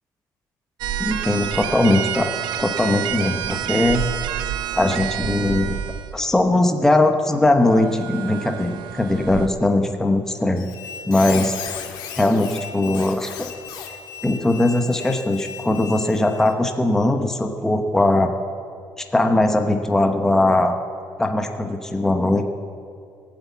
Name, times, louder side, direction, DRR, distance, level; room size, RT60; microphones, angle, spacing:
sound 1, 0.8-6.2 7.6-9.5, right 10 dB, 85° right, 0.7 m, -28 dB
voice 1, 1.0-2.3 2.6-4.0 4.7-5.8 6.1-10.7 11.1-11.5 12.2-13.5 14.2-18.3 19.1-20.7 21.2-22.4, left 2 dB, 5° left, 4 dB, 0.9 m, -20 dB
Squeak, 10.6-16.5, left 8 dB, 90° left, 1.8 m, -36 dB
19.0 x 8.4 x 8.3 m, 2.3 s
cardioid pair, 150°, 7 cm